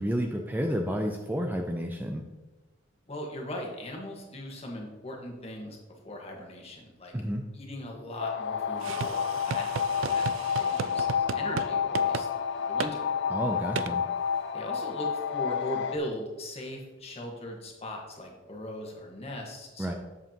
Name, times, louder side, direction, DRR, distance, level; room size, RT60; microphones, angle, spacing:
voice 1, 0.0-2.2 7.1-7.4 13.3-14.0 19.8-19.9, equal, 10° right, 3 dB, 0.4 m, -30 dB
voice 2, 3.1-5.8 6.0-7.1 7.5-9.7 10.1-10.2 10.6-13.1 14.5-19.9, left 1 dB, 30° left, 0 dB, 1.4 m, -39 dB
sound 1, 8.2-16.0, left 7 dB, 60° left, 0.4 m, -30 dB
sound 2, 8.8-11.7 11.9-12.3 12.8-12.9 13.8-13.9, right 6 dB, 85° right, 0.3 m, -34 dB
8.0 x 7.3 x 2.9 m, 1.1 s
head